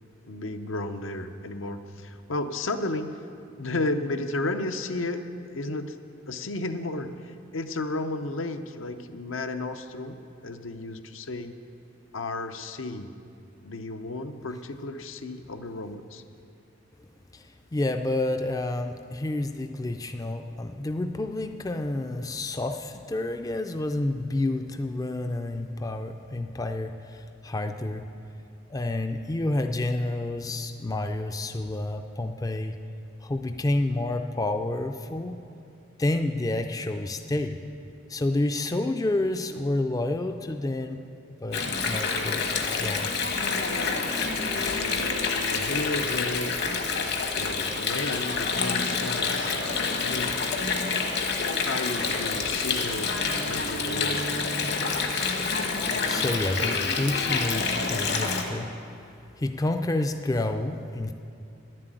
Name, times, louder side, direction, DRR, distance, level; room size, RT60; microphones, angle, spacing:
voice 1, 0.3-3.3 3.6-6.0 6.3-11.5 12.1-13.1 13.6-16.2 45.5-46.6 47.3-49.5 50.0-50.4 51.6-53.1 53.5-54.2, left 2 dB, 75° left, 8 dB, 0.7 m, -33 dB
voice 2, 17.3-28.1 28.7-32.8 33.2-35.4 36.0-37.6 38.1-41.0 41.4-42.4 42.8-43.1 55.6-58.7 59.4-61.1, left 2 dB, 20° left, 7 dB, 0.4 m, -29 dB
Water, 41.5-58.4, left 4 dB, 55° left, 1.2 m, -27 dB
10.5 x 7.6 x 9.1 m, 2.6 s
head